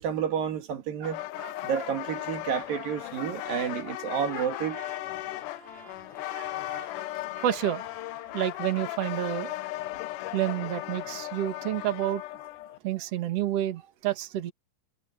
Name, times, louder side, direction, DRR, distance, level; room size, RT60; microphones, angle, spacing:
voice 1, 0.0-1.2 1.6-4.8, right 8 dB, 90° right, 3.9 m, -30 dB
sound 1, 1.0-12.8, left 16 dB, 80° left, 2.1 m, -37 dB
voice 2, 1.0-1.9 3.2-3.3 4.8-4.9 6.3-6.9 7.3-7.9 8.3-9.5 10.3-12.2 12.8-14.5, right 12 dB, 50° right, 2.6 m, -30 dB
Trumpet, 1.6-9.3, right 1 dB, 15° right, 7.2 m, -53 dB
omnidirectional pair, 3.9 m